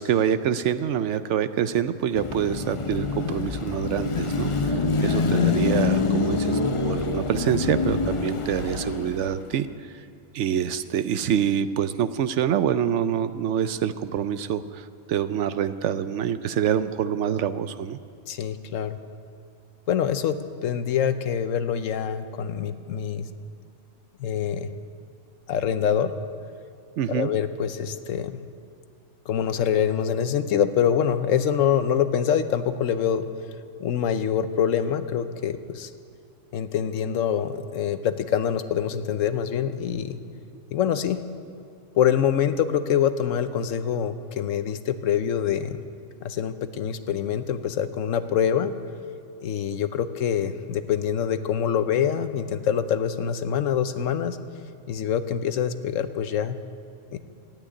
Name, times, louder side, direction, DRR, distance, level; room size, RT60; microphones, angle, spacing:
voice 1, 0.0-10.0 10.3-18.0 27.0-27.3, right 9 dB, 70° right, 12 dB, 0.9 m, -26 dB
Car passing by / Traffic noise roadway noise / Engine, 2.2-9.5, left 4 dB, 40° left, 0.5 m, -25 dB
voice 2, 18.3-19.0 19.9-23.3 24.2-24.7 25.5-26.1 27.1-28.4 29.3-33.3 33.8-35.9 36.5-40.2 40.7-41.2 41.9-45.8 46.2-48.7 49.4-54.4 54.9-56.6 57.1-57.2, left 8 dB, 80° left, 11 dB, 1.1 m, -25 dB
13.5 x 9.0 x 9.7 m, 2.5 s
omnidirectional pair, 1.3 m